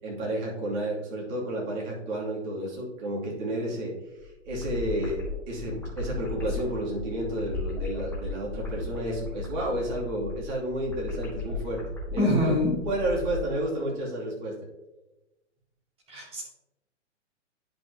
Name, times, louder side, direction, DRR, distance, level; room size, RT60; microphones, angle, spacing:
voice 1, 0.0-3.9 4.4-5.2 5.5-11.8 12.1-12.6 12.8-14.6, right 1 dB, 40° right, -4 dB, 2.8 m, -31 dB
sound 1, 4.2-13.4, left 2 dB, 5° left, 1.6 m, -36 dB
voice 2, 12.2-12.7 16.1-16.4, left 1 dB, 15° right, -4 dB, 2.4 m, -24 dB
10.0 x 5.3 x 2.9 m, 1.0 s
figure-of-eight pair, 120°, 36 cm